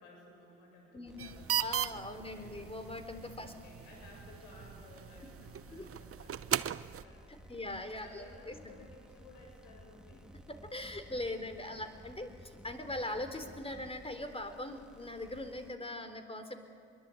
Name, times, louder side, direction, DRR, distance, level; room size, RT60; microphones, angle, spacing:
voice 1, 0.0-1.6 2.3-2.7 3.4-7.6 8.0-10.3 11.7-11.9, left 2 dB, 75° left, 0 dB, 7.0 m, -57 dB
sound 1, 1.1-15.7, equal, ahead, 1.9 m, -56 dB
sound 2, 1.2-7.0, right 10 dB, 40° right, 0.8 m, -38 dB
voice 2, 1.6-3.5 5.7-5.9 7.5-8.8 10.7-16.5, left 1 dB, 15° left, 9 dB, 3.7 m, -41 dB
24.5 x 22.5 x 8.6 m, 2.3 s
hypercardioid pair, 50°, 35 cm